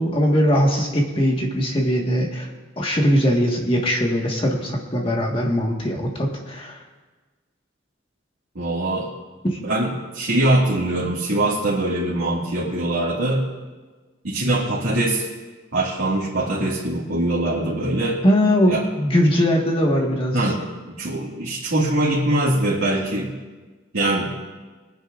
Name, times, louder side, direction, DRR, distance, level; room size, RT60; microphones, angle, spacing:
voice 1, 0.0-2.5 2.8-6.8 18.2-20.4, equal, 25° left, -1 dB, 1.7 m, -20 dB
voice 2, 8.6-9.1 9.6-13.4 14.2-15.3 15.7-18.2 18.7-18.8 20.3-20.7 21.0-23.3 23.9-24.3, right 1 dB, 85° right, -8 dB, 2.1 m, -22 dB
24.5 x 9.8 x 2.6 m, 1.3 s
head